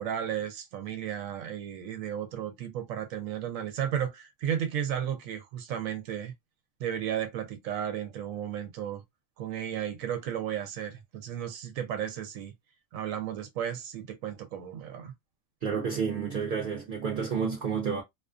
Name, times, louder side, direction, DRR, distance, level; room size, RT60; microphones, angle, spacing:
voice 1, 0.0-6.3 6.8-9.0 9.4-12.5 12.9-15.1, right 9 dB, 85° right, 1.0 m, -34 dB
voice 2, 15.6-18.0, right 6 dB, 55° right, 0.6 m, -30 dB
2.4 x 2.4 x 2.3 m
omnidirectional pair, 1.4 m